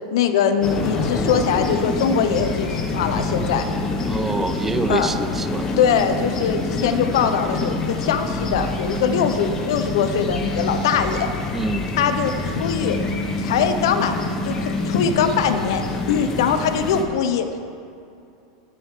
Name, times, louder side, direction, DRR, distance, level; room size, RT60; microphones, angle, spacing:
voice 1, 0.1-3.7 4.9-5.1 5.8-11.3 12.0-13.0 13.4-15.8 16.1-17.5, left 7 dB, 75° left, 8 dB, 0.8 m, -22 dB
sound 1, 0.6-17.0, left 2 dB, 25° left, 1.1 m, -26 dB
voice 2, 4.1-5.7 11.5-11.9, right 3 dB, 10° right, 12 dB, 0.3 m, -25 dB
16.0 x 6.8 x 3.7 m, 2.5 s
supercardioid pair, 135°, 2 cm